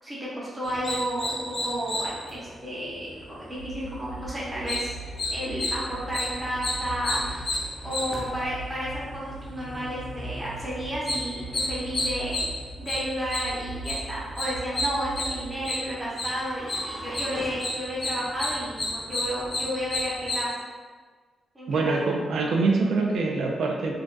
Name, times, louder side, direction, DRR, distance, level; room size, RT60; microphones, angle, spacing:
voice 1, 0.0-7.2 7.8-12.5 12.8-20.5 21.5-22.0, equal, 15° right, -7 dB, 0.6 m, -32 dB
sound 1, 0.6-20.5, left 1 dB, 30° left, 0.4 m, -33 dB
sound 2, 3.6-15.6, right 2 dB, 80° left, 0.6 m, -41 dB
sound 3, 16.3-18.3, equal, 40° right, 0.8 m, -41 dB
voice 2, 21.7-23.9, right 3 dB, 75° right, 0 dB, 0.3 m, -24 dB
2.5 x 2.2 x 2.2 m, 1.5 s
wide cardioid pair, 150°, 0 cm